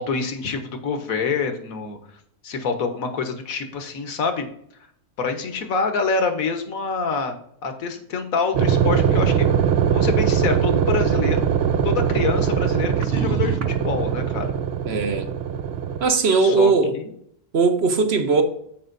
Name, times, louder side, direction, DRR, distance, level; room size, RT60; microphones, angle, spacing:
voice 1, 0.0-2.0 2.4-4.5 5.2-7.3 7.6-9.5 9.9-11.4 11.8-14.5 16.4-17.1, left 5 dB, 65° left, 1.5 m, -26 dB
sound 1, 8.5-16.0, right 8 dB, 70° right, 0.5 m, -21 dB
voice 2, 14.8-15.3 16.0-16.9 17.5-18.4, right 4 dB, 50° right, 1.0 m, -19 dB
13.5 x 5.0 x 2.6 m
omnidirectional pair, 1.6 m